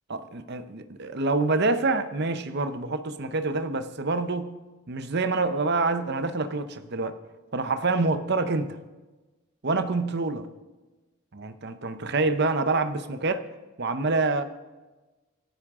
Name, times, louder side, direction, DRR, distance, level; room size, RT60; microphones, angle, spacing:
voice 1, 0.1-4.6 4.9-7.2 7.5-8.8 9.6-10.5 11.3-13.4 13.8-14.4, right 3 dB, 50° right, 10 dB, 0.7 m, -26 dB
26.5 x 9.7 x 3.7 m, 1.2 s
head